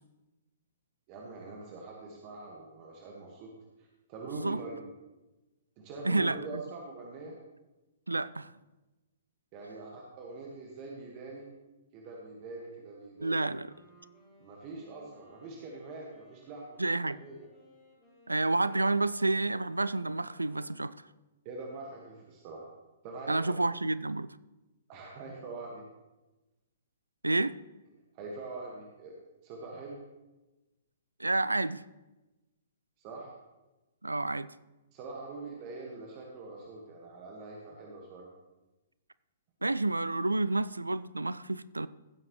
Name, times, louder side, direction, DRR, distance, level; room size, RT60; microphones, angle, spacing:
voice 1, 1.1-3.5 3.8-4.8 5.8-7.4 9.5-11.5 11.9-13.4 14.4-17.5 21.4-22.7 23.0-23.5 24.9-25.9 28.1-29.1 29.4-30.0 33.0-33.3 34.9-38.3, right 3 dB, 35° right, -1 dB, 1.6 m, -44 dB
voice 2, 6.0-6.6 8.1-8.5 13.2-13.7 16.8-17.2 18.3-21.0 23.3-24.4 27.2-27.5 31.2-31.8 34.0-34.5 39.6-41.9, right 2 dB, 80° right, 17 dB, 0.3 m, -29 dB
Wind instrument woodwind instrument, 13.0-21.0, left 3 dB, 10° left, 4.1 m, -60 dB
15.5 x 7.7 x 3.1 m, 1.1 s
figure-of-eight pair, 115°, 0 cm